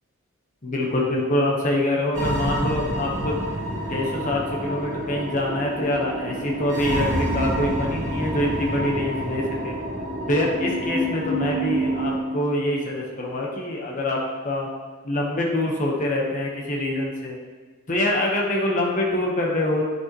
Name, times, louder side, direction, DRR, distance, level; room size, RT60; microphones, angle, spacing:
voice 1, 0.6-3.4 3.9-9.8 10.3-14.7 15.0-17.4 17.9-19.9, left 1 dB, 35° left, -2 dB, 1.0 m, -25 dB
sound 1, 2.1-12.2, right 1 dB, 35° right, 1.8 m, -28 dB
9.6 x 6.2 x 3.0 m, 1.4 s
head